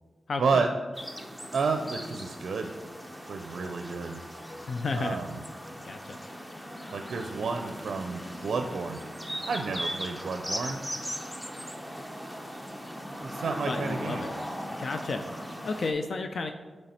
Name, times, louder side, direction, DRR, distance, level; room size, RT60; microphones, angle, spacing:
voice 1, 0.3-0.6 4.7-5.2 5.8-6.2 13.7-14.3 14.8-16.5, left 3 dB, 65° left, 6 dB, 0.4 m, -32 dB
sound 1, 0.9-15.9, equal, 10° left, 0.8 m, -39 dB
voice 2, 1.5-2.7 3.2-4.2 4.9-5.4 6.9-10.8 13.2-14.3, right 4 dB, 80° right, 6 dB, 0.4 m, -31 dB
8.9 x 3.3 x 4.3 m, 1.4 s
cardioid pair, 70°, 0 cm